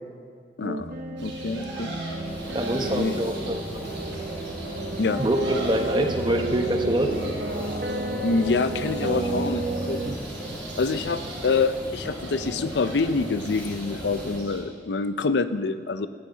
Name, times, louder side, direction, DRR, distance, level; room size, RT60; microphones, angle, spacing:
voice 1, 0.6-0.9 1.2-1.9 2.9-3.2 5.0-5.2 8.2-10.0 10.8-16.1, left 4 dB, 70° left, 12 dB, 0.5 m, -26 dB
sound 1, 0.6-10.2, right 1 dB, 50° right, 0.9 m, -33 dB
sound 2, 1.2-14.6, right 1 dB, 80° right, 4.1 m, -38 dB
sound 3, 2.2-14.4, equal, 10° left, 2.8 m, -38 dB
voice 2, 2.5-3.8 5.2-7.1, right 1 dB, 25° right, 4 dB, 1.1 m, -25 dB
17.5 x 14.0 x 3.9 m, 2.2 s
head